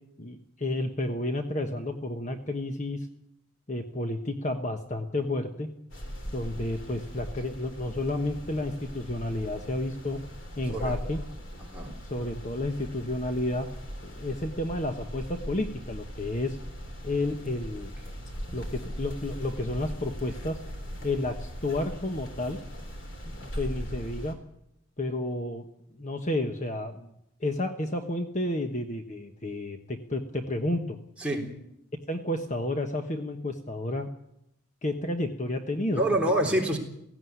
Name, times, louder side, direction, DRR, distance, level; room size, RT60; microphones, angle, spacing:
voice 1, 0.2-3.1 3.7-5.7 6.3-10.2 10.6-11.2 12.1-13.7 14.0-16.6 17.0-17.9 18.5-20.6 21.0-22.6 23.4-24.4 25.0-25.6 25.9-27.1 27.4-31.0 32.1-34.1 34.8-36.0, left 1 dB, 35° left, 5 dB, 1.2 m, -31 dB
sound 1, 5.9-24.3, equal, 55° left, 3.6 m, -40 dB
voice 2, 10.7-11.1 11.7-11.9 31.2-31.5 35.9-36.8, right 1 dB, 5° right, -2 dB, 3.6 m, -26 dB
17.5 x 16.5 x 9.5 m, 0.79 s
head